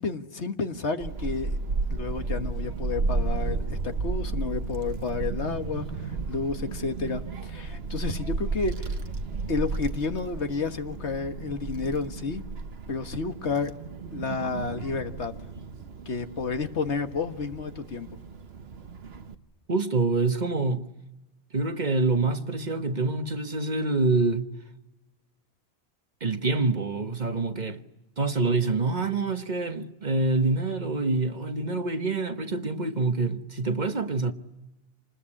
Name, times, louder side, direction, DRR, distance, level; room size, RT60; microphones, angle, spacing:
voice 1, 0.0-1.6 1.9-8.9 9.5-12.4 12.9-13.7 14.1-15.3 16.1-18.1, left 4 dB, 85° left, 1.8 m, -31 dB
Child speech kid speaking / Wind, 1.0-19.4, right 3 dB, 65° right, 1.4 m, -33 dB
voice 2, 19.7-20.8 21.5-24.5 26.2-27.8 28.2-34.3, right 3 dB, 40° right, 1.2 m, -26 dB
27.5 x 20.5 x 9.9 m
omnidirectional pair, 1.1 m